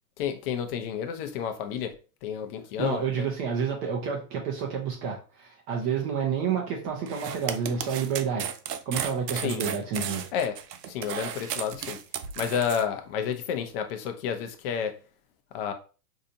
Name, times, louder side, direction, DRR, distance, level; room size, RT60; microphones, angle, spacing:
voice 1, 0.2-1.9 2.2-3.3 9.3-9.7 10.3-10.6 10.9-12.0 12.4-14.9 15.5-15.7, left 7 dB, 35° left, 0.6 m, -30 dB
voice 2, 2.8-8.5 8.9-10.3, right 6 dB, 25° right, 0.6 m, -29 dB
sound 1, 7.1-12.8, right 9 dB, 70° right, 0.6 m, -34 dB
4.0 x 2.7 x 2.7 m
hypercardioid pair, 125°, 49 cm